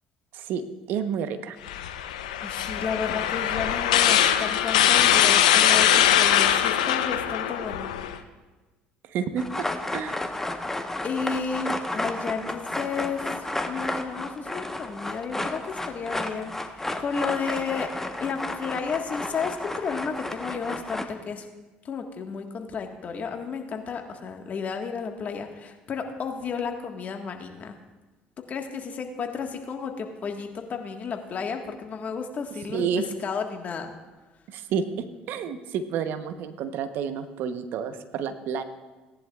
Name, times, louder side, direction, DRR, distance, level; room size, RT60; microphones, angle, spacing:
voice 1, 0.9-1.6 9.1-9.7 9.9-10.2 32.7-33.1 34.5-38.6, right 7 dB, 65° right, 10 dB, 0.9 m, -30 dB
sound 1, 1.7-8.2, left 10 dB, 90° left, 0.6 m, -22 dB
voice 2, 2.4-7.9 11.0-13.2 13.7-17.9 18.2-21.4 21.8-27.8 28.5-32.9 33.2-33.9, left 5 dB, 45° left, 4 dB, 1.5 m, -32 dB
sound 2, 9.4-21.1, left 1 dB, 10° left, 1.1 m, -32 dB
18.0 x 10.5 x 2.4 m, 1.2 s
hypercardioid pair, 70°, 4 cm